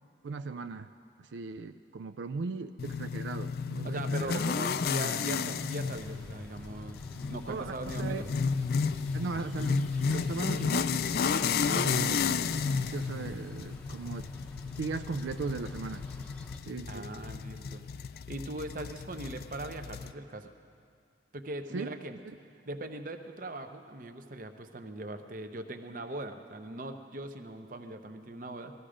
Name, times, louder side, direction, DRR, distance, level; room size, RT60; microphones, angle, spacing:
voice 1, 0.2-0.9 1.3-4.5 7.5-8.2 9.1-11.0 11.6-12.3 12.9-14.3 14.8-16.0 16.7-17.1 21.7-21.9, right 4 dB, 90° right, 10 dB, 0.4 m, -37 dB
sound 1, 2.8-20.1, left 5 dB, 55° left, 0.4 m, -32 dB
voice 2, 3.8-8.3 16.9-17.8 18.3-20.5 21.3-22.2 22.7-28.7, right 1 dB, 50° right, 7 dB, 0.8 m, -40 dB
sound 2, 5.8-16.6, equal, 5° left, 0.7 m, -50 dB
18.5 x 14.0 x 5.0 m, 2.3 s
head